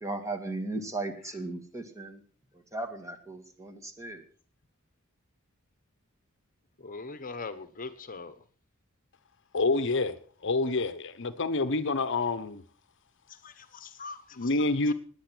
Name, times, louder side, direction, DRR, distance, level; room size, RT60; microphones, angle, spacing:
voice 1, 0.0-2.2 2.7-4.2, right 2 dB, 15° right, 7 dB, 2.1 m, -36 dB
voice 2, 6.8-8.3 13.3-14.5 14.9-15.0, left 4 dB, 40° left, 12 dB, 1.1 m, -41 dB
voice 3, 9.5-10.2 10.4-12.6 14.4-14.9, left 3 dB, 60° left, 13 dB, 0.9 m, -27 dB
18.5 x 9.9 x 6.2 m, 0.43 s
head